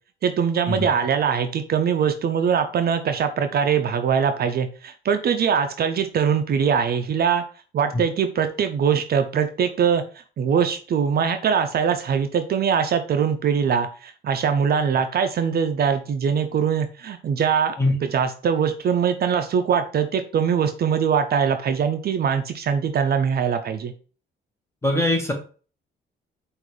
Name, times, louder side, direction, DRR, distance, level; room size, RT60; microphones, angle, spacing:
voice 1, 0.2-7.4 7.7-10.0 10.4-17.8 18.0-23.9, right 7 dB, 50° right, 8 dB, 0.5 m, -22 dB
voice 2, 24.8-25.3, left 1 dB, 15° left, 2 dB, 1.4 m, -21 dB
5.1 x 2.6 x 3.2 m, 0.38 s
cardioid pair, 90°, 20 cm